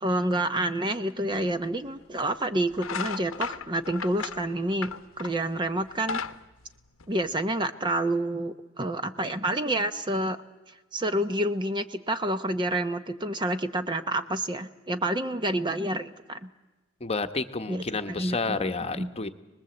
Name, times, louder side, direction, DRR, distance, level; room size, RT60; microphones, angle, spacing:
voice 1, 0.0-4.9 5.2-6.2 7.1-10.4 10.9-16.5 17.7-19.1, right 1 dB, 20° right, 10 dB, 0.8 m, -28 dB
sound 1, 1.4-1.5 2.2-2.4 2.7-5.5 5.8-7.5, left 6 dB, 75° left, 0.9 m, -35 dB
voice 2, 17.0-19.3, left 3 dB, 30° left, 8 dB, 1.0 m, -30 dB
26.5 x 20.0 x 7.8 m, 1.1 s
head